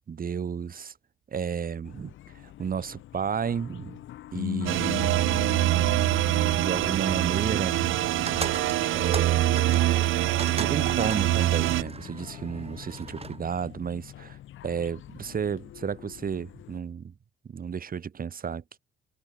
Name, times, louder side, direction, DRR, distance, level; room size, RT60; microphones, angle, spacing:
voice 1, 0.1-0.9 1.3-4.0 4.3-5.1 6.6-8.0 9.0-9.9 10.6-14.4 14.6-17.1 17.4-18.8, right 7 dB, 45° right, 3.8 m, -32 dB
sound 1, 1.8-16.8, left 13 dB, 80° left, 2.4 m, -41 dB
sound 2, 4.7-11.8, right 15 dB, 85° right, 1.4 m, -24 dB
sound 3, 8.3-13.4, right 4 dB, 30° right, 2.4 m, -38 dB
cardioid pair, 90°, 20 cm